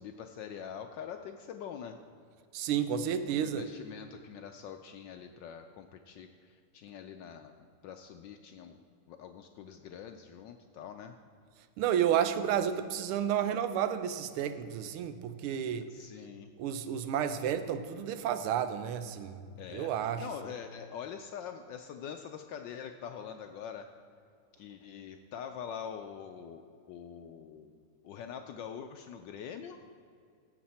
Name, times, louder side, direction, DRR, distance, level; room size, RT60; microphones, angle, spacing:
voice 1, 0.0-2.0 3.4-7.5 7.8-8.8 9.1-11.1 15.9-16.5 19.6-23.9 24.6-29.8, left 8 dB, 75° left, 6 dB, 1.0 m, -44 dB
voice 2, 2.5-3.6 11.8-15.9 16.6-19.4 19.7-20.2, right 9 dB, 80° right, 11 dB, 1.5 m, -31 dB
16.0 x 7.6 x 4.2 m, 2.3 s
omnidirectional pair, 2.4 m